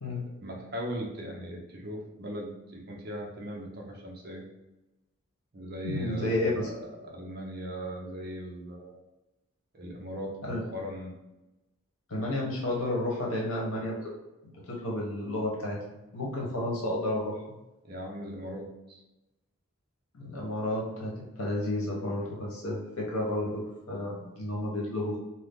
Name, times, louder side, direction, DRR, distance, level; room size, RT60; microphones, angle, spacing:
voice 1, 0.1-4.4 5.5-9.0 9.7-11.1 17.8-19.0, equal, 45° right, -1 dB, 0.7 m, -39 dB
voice 2, 5.8-6.7 10.4-10.6 12.1-14.1 14.7-15.8 16.1-17.6 20.1-25.2, left 1 dB, 90° left, -3 dB, 1.0 m, -31 dB
2.7 x 2.3 x 3.6 m, 0.97 s
head